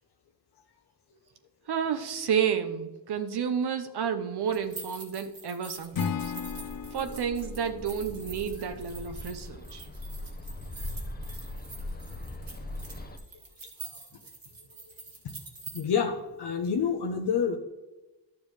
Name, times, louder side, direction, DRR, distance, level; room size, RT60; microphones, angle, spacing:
voice 1, 1.7-6.3 6.9-9.9, right 7 dB, 75° right, 8 dB, 0.8 m, -31 dB
sound 1, 4.5-15.8, right 4 dB, 55° right, 2.3 m, -46 dB
Acoustic guitar / Strum, 5.9-9.1, left 7 dB, 60° left, 0.6 m, -36 dB
Bird, 5.9-13.2, left 1 dB, 25° left, 0.9 m, -41 dB
voice 2, 15.7-17.6, left 6 dB, 80° left, 1 dB, 1.0 m, -27 dB
12.0 x 6.9 x 3.2 m, 1.1 s
wide cardioid pair, 100°, 39 cm